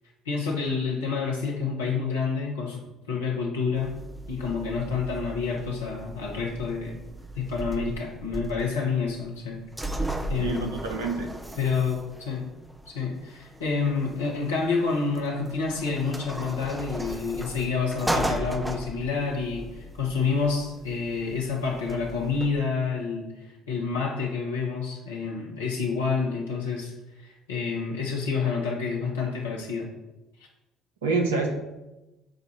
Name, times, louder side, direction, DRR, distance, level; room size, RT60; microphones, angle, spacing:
voice 1, 0.2-2.8 3.1-3.9 4.3-7.0 7.3-9.6 9.9-10.7 11.6-12.4 12.9-26.9 27.2-29.9, left 5 dB, 75° left, -1 dB, 1.2 m, -28 dB
sound 1, 3.7-22.5, right 1 dB, 10° right, 0.7 m, -37 dB
voice 2, 10.4-11.3 31.0-31.5, right 3 dB, 75° right, 3 dB, 0.9 m, -27 dB
7.7 x 2.7 x 6.0 m, 1.0 s
figure-of-eight pair, 50°, 0 cm